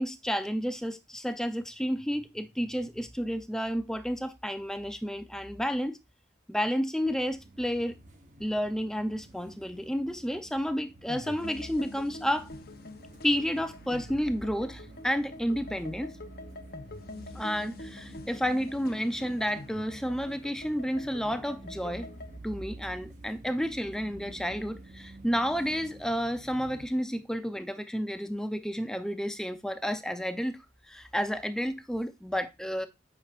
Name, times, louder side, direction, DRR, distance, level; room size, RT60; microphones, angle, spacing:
voice 1, 0.0-6.0 6.5-7.9 8.4-12.5 13.2-16.2 17.3-22.1 22.4-32.9, equal, 5° left, 0.5 m, -31 dB
sound 1, 7.1-26.9, right 2 dB, 40° right, 1.2 m, -49 dB
sound 2, 11.1-22.4, left 2 dB, 55° left, 0.8 m, -46 dB
8.5 x 5.8 x 2.5 m
head